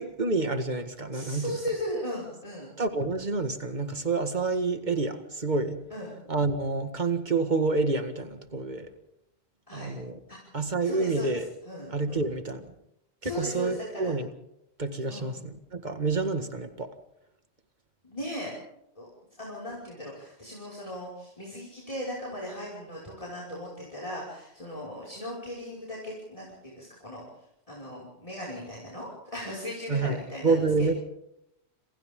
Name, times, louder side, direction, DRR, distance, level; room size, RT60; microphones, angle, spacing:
voice 1, 0.0-1.6 2.8-5.8 6.3-8.9 9.7-10.2 10.5-11.5 11.9-12.7 13.2-14.3 14.8-16.9 29.9-30.9, right 3 dB, 40° right, 8 dB, 2.0 m, -28 dB
voice 2, 1.1-2.7 5.9-6.1 9.7-9.9 10.3-10.4 10.8-12.2 13.2-14.1 15.1-15.4 18.0-18.5 19.0-19.1 19.4-27.2 27.7-30.9, equal, 30° left, -4 dB, 5.9 m, -37 dB
29.0 x 27.5 x 3.8 m, 0.83 s
omnidirectional pair, 1.1 m